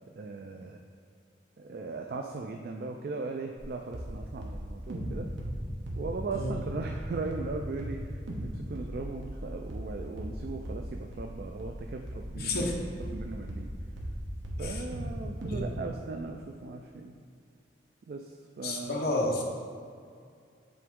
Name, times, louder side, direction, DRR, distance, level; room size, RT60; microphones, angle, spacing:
voice 1, 0.1-0.8 1.6-5.3 6.0-12.7 13.1-13.7 14.6-17.1 18.1-19.1, right 3 dB, 55° right, 3 dB, 0.3 m, -38 dB
sound 1, 3.6-3.7 3.9-4.1 4.4-6.6 6.8-7.1 7.3-7.5 7.8-8.0 8.3-8.5 8.8-14.2 14.4-15.1 15.4-15.6, right 1 dB, 80° right, 0.9 m, -37 dB
voice 2, 12.4-12.7 14.6-14.8 15.5-15.7 18.6-19.4, left 2 dB, 55° left, 0 dB, 0.8 m, -31 dB
7.7 x 3.4 x 3.6 m, 2.3 s
head